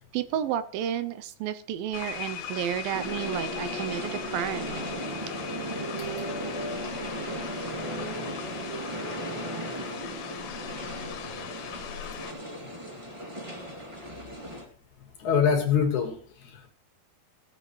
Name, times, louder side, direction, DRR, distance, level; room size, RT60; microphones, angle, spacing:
voice 1, 0.0-4.8, right 10 dB, 80° right, 2.4 m, -31 dB
sound 1, 1.9-12.3, left 9 dB, 80° left, 3.0 m, -40 dB
sound 2, 2.9-14.6, equal, 10° right, 1.5 m, -36 dB
voice 2, 15.2-16.7, left 7 dB, 60° left, 2.8 m, -26 dB
17.5 x 9.0 x 3.2 m
omnidirectional pair, 4.3 m